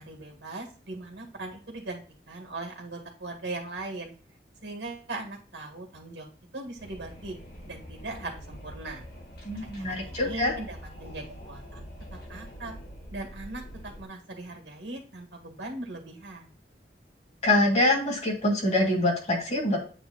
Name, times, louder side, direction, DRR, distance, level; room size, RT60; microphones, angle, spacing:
voice 1, 0.0-4.1 4.6-6.3 6.5-7.4 7.7-9.0 9.8-11.8 12.3-12.7 13.1-16.5, right 2 dB, 75° right, 2 dB, 1.9 m, -39 dB
Wind, 6.8-14.0, equal, 55° left, 2.5 m, -44 dB
voice 2, 9.4-10.6 17.4-19.8, left 1 dB, 35° left, -1 dB, 2.3 m, -25 dB
8.9 x 3.1 x 3.9 m, 0.41 s
head